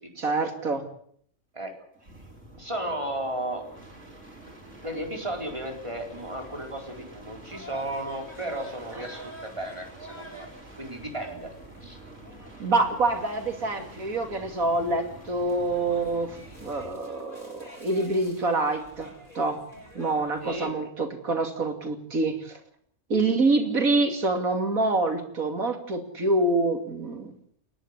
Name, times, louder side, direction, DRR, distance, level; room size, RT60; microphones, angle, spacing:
voice 1, 0.2-0.9 8.9-9.0 12.6-19.6 19.9-22.6 23.1-27.3, right 2 dB, 85° right, 5 dB, 3.2 m, -26 dB
sound 1, 1.9-17.0 18.8-19.2, right 2 dB, 60° right, 6.0 m, -48 dB
voice 2, 2.6-3.7 4.5-10.5 10.8-11.5 11.8-12.0 20.4-20.7, right 1 dB, 20° right, 2 dB, 4.4 m, -34 dB
sound 2, 6.1-20.7, right 1 dB, 30° left, 7.3 m, -49 dB
29.0 x 11.5 x 8.3 m, 0.63 s
omnidirectional pair, 1.4 m